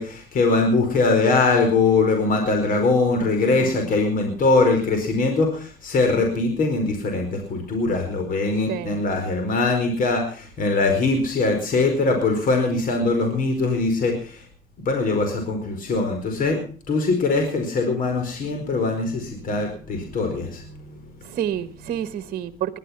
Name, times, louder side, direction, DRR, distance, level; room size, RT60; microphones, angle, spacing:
voice 1, 0.0-14.4 14.8-16.6 16.9-20.9, left 3 dB, 55° left, 4.7 m, -22 dB
voice 2, 3.5-3.9 8.7-9.0 21.2-22.8, right 10 dB, 55° right, 1.2 m, -29 dB
20.0 x 12.5 x 5.8 m
cardioid pair, 110°, 17 cm